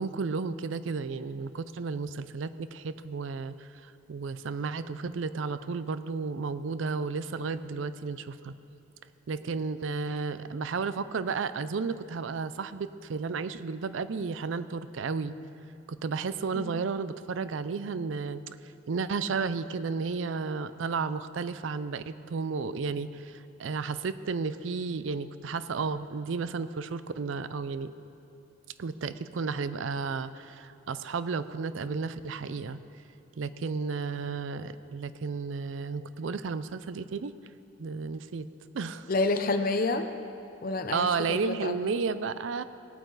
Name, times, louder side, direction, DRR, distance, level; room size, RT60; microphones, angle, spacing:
voice 1, 0.0-8.5 9.3-15.3 15.9-18.4 18.9-27.9 28.8-32.8 33.4-37.3 37.8-38.5 38.7-39.1 40.9-42.6, right 4 dB, 70° right, 14 dB, 0.4 m, -33 dB
voice 2, 39.1-40.1 40.6-42.0, left 3 dB, 45° left, 8 dB, 0.7 m, -29 dB
18.5 x 8.8 x 4.0 m, 2.6 s
head